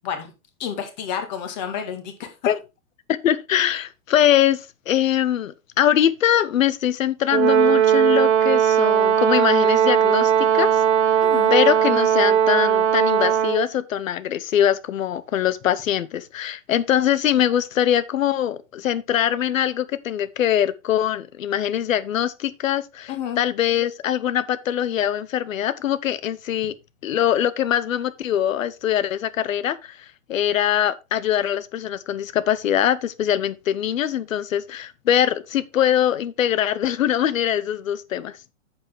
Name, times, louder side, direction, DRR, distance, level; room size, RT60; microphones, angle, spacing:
voice 1, 0.6-2.3 11.2-11.5 23.1-23.4, left 8 dB, 35° left, 2.0 m, -30 dB
voice 2, 3.2-11.2 11.5-26.7 27.0-29.9 30.3-38.3, left 10 dB, 80° left, 1.0 m, -22 dB
Brass instrument, 7.3-13.7, right 9 dB, 55° right, 1.8 m, -18 dB
8.5 x 7.3 x 3.5 m
hypercardioid pair, 170°, 40 cm